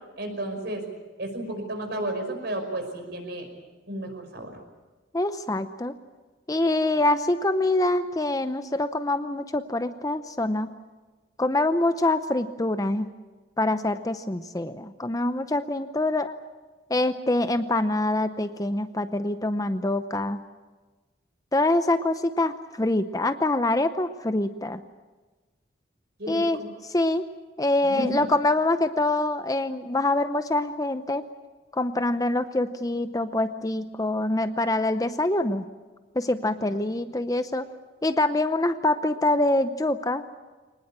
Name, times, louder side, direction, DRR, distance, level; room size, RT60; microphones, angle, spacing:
voice 1, 0.2-0.8 1.2-3.5 3.9-4.5 26.2-26.7 27.8-28.3 36.6-36.7, right 1 dB, 60° right, 5 dB, 5.4 m, -32 dB
voice 2, 5.1-5.9 6.5-10.7 11.4-13.1 13.6-16.3 16.9-20.4 21.5-24.8 26.3-27.2 27.6-31.2 31.7-35.6 36.2-37.7 38.0-40.2, left 2 dB, 20° left, 10 dB, 0.7 m, -25 dB
24.0 x 19.5 x 8.8 m, 1.3 s
head